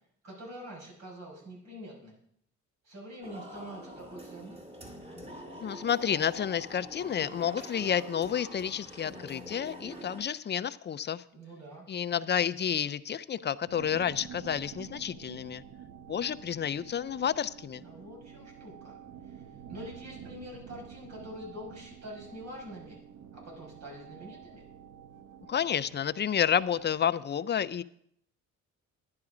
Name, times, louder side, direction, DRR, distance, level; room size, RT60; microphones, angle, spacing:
voice 1, 0.2-2.2 2.8-4.6 11.3-11.9 17.8-19.0 19.2-23.0 23.3-24.6, equal, 60° right, -2 dB, 5.6 m, -45 dB
sound 1, 3.2-10.2, equal, 20° right, 2.5 m, -45 dB
voice 2, 5.6-11.2 11.9-15.6 16.1-17.8 25.5-27.8, left 8 dB, 35° left, 15 dB, 0.5 m, -30 dB
sound 2, 13.7-27.0, right 8 dB, 80° right, 1.0 m, -49 dB
10.5 x 10.5 x 5.0 m, 0.69 s
cardioid pair, 90°, 30 cm